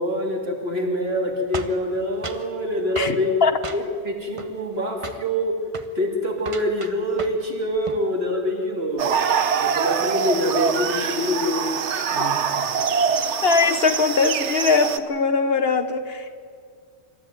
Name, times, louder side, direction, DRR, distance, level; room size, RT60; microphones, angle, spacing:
voice 1, 0.0-3.4 3.7-5.6 6.0-9.2 9.6-11.7 12.0-12.7, left 1 dB, 60° right, 3.4 m, -25 dB
sound 1, 1.5-2.5 3.0-3.2 3.6-4.1 4.4-4.8 5.0-5.3 5.7-5.9 6.4-7.5 7.7-8.1, right 3 dB, 30° right, 0.9 m, -35 dB
voice 2, 3.0-3.5 13.4-16.4, left 4 dB, 60° left, 1.2 m, -21 dB
sound 2, 9.0-15.0, right 6 dB, 75° right, 1.2 m, -24 dB
26.0 x 13.0 x 9.3 m
omnidirectional pair, 1.2 m